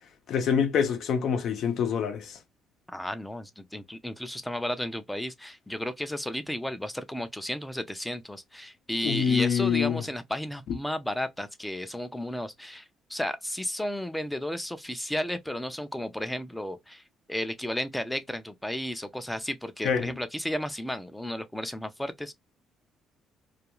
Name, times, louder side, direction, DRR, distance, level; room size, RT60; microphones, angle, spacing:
voice 1, 0.3-2.4 9.0-10.0 19.8-20.1, left 7 dB, 65° left, 0.6 m, -26 dB
voice 2, 2.9-17.0 17.3-22.3, left 1 dB, 5° left, 0.4 m, -33 dB
2.4 x 2.2 x 2.9 m
cardioid pair, 110°, 0 cm